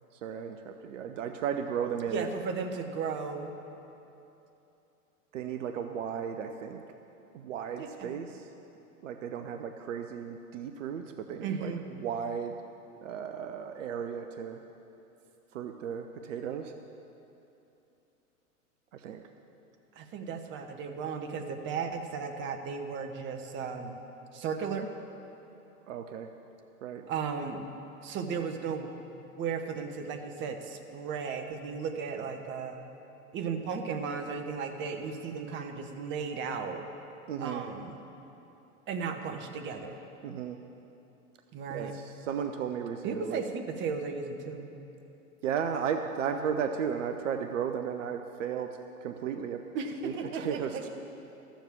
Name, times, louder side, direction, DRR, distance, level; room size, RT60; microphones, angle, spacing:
voice 1, 0.2-2.3 5.3-6.8 7.3-8.5 9.0-12.6 13.0-14.6 15.5-16.7 18.9-19.3 25.9-26.3 26.8-27.0 37.3-37.6 40.2-40.6 41.7-43.4 45.4-49.6 50.0-50.9, right 7 dB, 55° right, 6 dB, 0.7 m, -35 dB
voice 2, 2.1-3.6 7.8-8.1 11.4-11.8 19.9-24.0 24.3-24.9 27.1-27.7 28.0-28.9 29.4-32.8 33.3-36.8 37.4-38.0 38.9-40.0 41.5-41.9 43.0-44.7 49.7-50.9, right 5 dB, 25° right, 5 dB, 0.9 m, -35 dB
13.5 x 7.3 x 7.2 m, 2.9 s
figure-of-eight pair, 95°, 46 cm